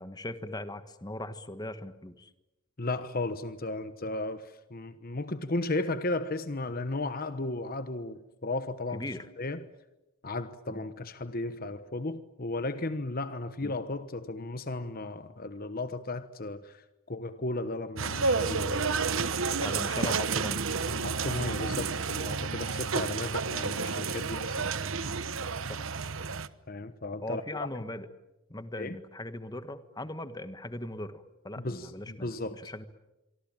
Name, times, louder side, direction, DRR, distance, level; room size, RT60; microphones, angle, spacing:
voice 1, 0.0-2.3 8.9-9.3 10.7-10.8 13.6-13.7 19.6-20.6 23.0-23.1 25.7-25.8 27.2-28.1 28.5-32.9, left 1 dB, 20° left, 1.4 m, -39 dB
voice 2, 2.8-9.0 9.4-9.7 10.2-16.8 17.1-19.1 19.5-19.9 20.9-24.7 26.7-27.8 28.8-28.9 31.6-32.7, left 2 dB, 45° left, 1.1 m, -35 dB
sound 1, 18.0-26.5, right 4 dB, 65° right, 1.1 m, -30 dB
26.0 x 24.5 x 9.0 m
head